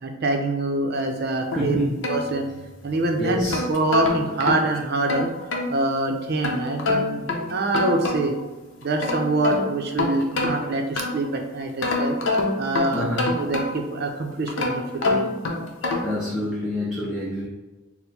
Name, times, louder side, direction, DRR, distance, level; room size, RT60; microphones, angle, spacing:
voice 1, 0.0-1.8 2.1-2.5 2.8-5.3 5.7-7.2 7.5-8.4 8.8-12.2 12.6-13.1 13.4-15.4, right 2 dB, 55° right, 4 dB, 0.6 m, -25 dB
sound 1, 1.5-2.9 3.3-5.7 6.4-8.5 8.8-11.3 11.8-14.0 14.5-16.2, left 2 dB, 70° left, 0.7 m, -27 dB
voice 2, 1.6-1.9 3.2-3.6 12.9-13.4 15.9-17.5, equal, ahead, -6 dB, 0.5 m, -27 dB
4.3 x 2.1 x 4.1 m, 1.1 s
head